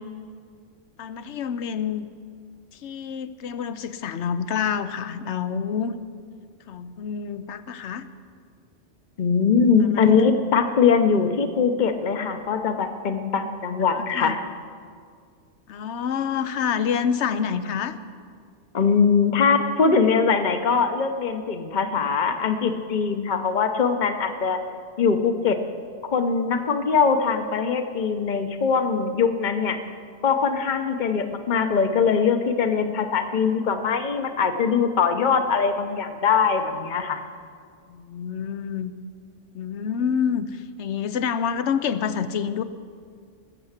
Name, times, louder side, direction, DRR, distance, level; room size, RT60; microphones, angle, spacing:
voice 1, 1.0-2.1 2.7-5.9 6.7-8.1 9.8-10.3 13.9-14.4 15.7-18.0 33.3-33.9 37.9-38.9 39.5-42.6, left 7 dB, 70° left, 12 dB, 1.0 m, -28 dB
voice 2, 9.2-14.4 18.7-24.6 25.0-25.6 26.0-29.8 30.2-37.2, left 5 dB, 40° left, 7 dB, 1.0 m, -22 dB
19.5 x 7.0 x 8.1 m, 2.1 s
omnidirectional pair, 1.3 m